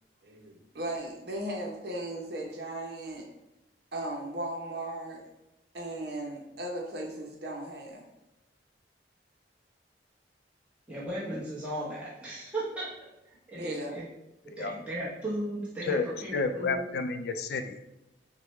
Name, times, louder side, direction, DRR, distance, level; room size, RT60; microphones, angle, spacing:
voice 1, 0.2-3.2 3.9-5.2 5.7-8.0 13.6-14.0, right 1 dB, 65° right, 0 dB, 0.8 m, -37 dB
voice 2, 10.9-12.9 13.5-14.0 14.6-16.8, right 1 dB, 5° right, -9 dB, 1.0 m, -36 dB
voice 3, 16.3-17.8, left 4 dB, 60° left, 8 dB, 0.4 m, -30 dB
6.3 x 2.2 x 3.1 m, 0.93 s
head